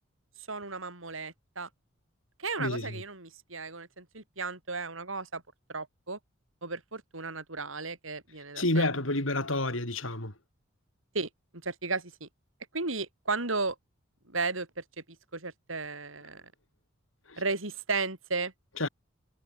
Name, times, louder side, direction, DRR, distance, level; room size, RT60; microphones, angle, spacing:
voice 1, 0.5-1.7 2.4-5.4 5.7-6.2 6.6-8.9 11.1-11.3 11.6-12.3 12.7-13.8 14.3-14.8 15.3-16.4 17.4-18.5, right 3 dB, 80° right, 5.7 m, -34 dB
voice 2, 2.6-3.0 8.6-10.3 17.3-17.4 18.8-18.9, left 2 dB, 75° left, 7.2 m, -29 dB
head